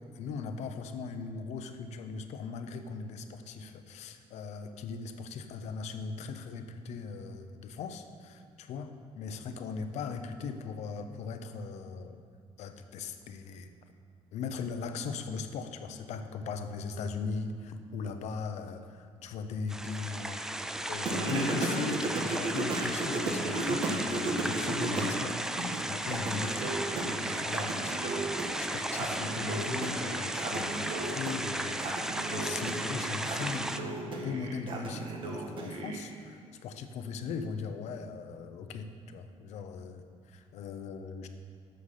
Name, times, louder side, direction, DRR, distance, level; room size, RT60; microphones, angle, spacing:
voice 1, 0.1-12.2 12.6-13.7 14.3-20.4 20.9-33.9 34.2-41.3, left 5 dB, 70° left, 8 dB, 0.8 m, -39 dB
sound 1, 19.7-33.8, right 1 dB, 5° right, 0.4 m, -35 dB
Singing, 21.1-25.2 25.6-36.0, right 2 dB, 45° right, 1.4 m, -35 dB
13.0 x 6.7 x 5.7 m, 2.1 s
cardioid pair, 175°, 12 cm